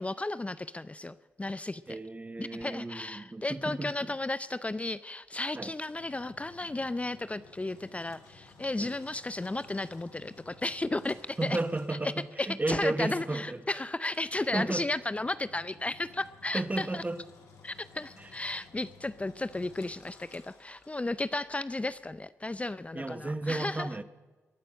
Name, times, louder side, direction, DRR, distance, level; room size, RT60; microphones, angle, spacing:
voice 1, 0.0-2.0 2.4-11.6 11.9-12.1 12.4-17.0 17.6-23.9, left 2 dB, 25° left, 15 dB, 0.5 m, -34 dB
voice 2, 1.9-4.1 5.5-5.7 8.8-8.9 11.4-13.6 14.5-14.9 16.5-17.2 18.2-18.3 22.9-24.0, right 2 dB, 25° right, 12 dB, 1.1 m, -33 dB
Engine, 5.3-21.4, left 4 dB, 85° left, 2.3 m, -56 dB
22.0 x 8.7 x 6.5 m, 1.3 s
supercardioid pair, 40°, 6 cm